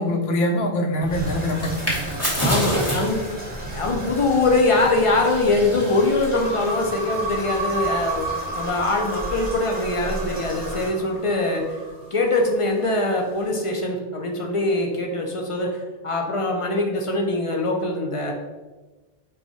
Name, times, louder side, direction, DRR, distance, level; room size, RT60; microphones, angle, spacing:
voice 1, 0.0-2.1, left 1 dB, 75° left, 4 dB, 0.8 m, -24 dB
sound 1, 1.0-6.8, right 1 dB, 15° left, 1.1 m, -29 dB
Toilet flush, 1.1-10.9, equal, 10° right, 0.8 m, -35 dB
voice 2, 2.4-3.2 3.7-8.2 8.6-11.6 12.1-15.8 16.0-18.3, left 2 dB, 40° left, 1 dB, 0.5 m, -22 dB
sound 2, 6.3-12.7, right 2 dB, 40° right, 0.9 m, -32 dB
4.7 x 2.3 x 4.0 m, 1.2 s
omnidirectional pair, 1.1 m